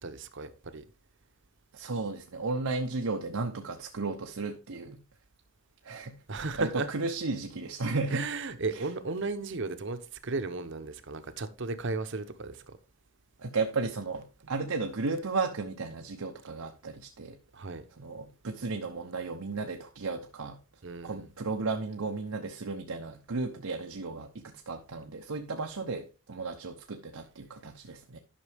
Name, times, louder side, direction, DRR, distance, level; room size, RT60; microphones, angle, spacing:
voice 1, 0.0-0.8 6.3-6.9 8.1-12.8 17.5-17.8 20.8-21.3, right 3 dB, 60° right, 0.9 m, -35 dB
voice 2, 1.7-5.0 5.8-8.2 8.7-8.8 13.4-17.4 18.0-20.6 21.0-28.2, right 3 dB, 85° right, 0.9 m, -34 dB
11.5 x 6.0 x 3.5 m
head